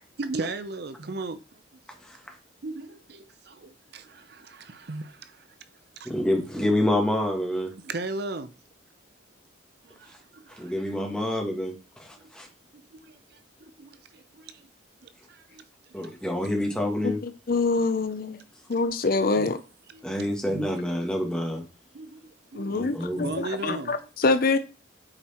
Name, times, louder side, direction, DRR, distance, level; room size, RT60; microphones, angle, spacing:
voice 1, 0.2-1.8 2.6-5.6 6.0-6.1 7.8-8.5 9.8-10.7 12.7-14.7 15.0-16.1 17.8-17.9 19.4-19.5 19.9-20.0 21.9-22.8 23.2-23.9, right 3 dB, 55° right, 0.6 m, -37 dB
voice 2, 2.0-2.4 6.0-7.7 10.0-10.2 10.5-12.5 15.9-17.2 20.0-21.6 22.7-23.3, left 1 dB, 5° left, 1.8 m, -28 dB
voice 3, 17.5-18.4 18.7-19.6 22.5-24.6, left 3 dB, 45° left, 0.5 m, -25 dB
8.7 x 4.6 x 4.4 m
head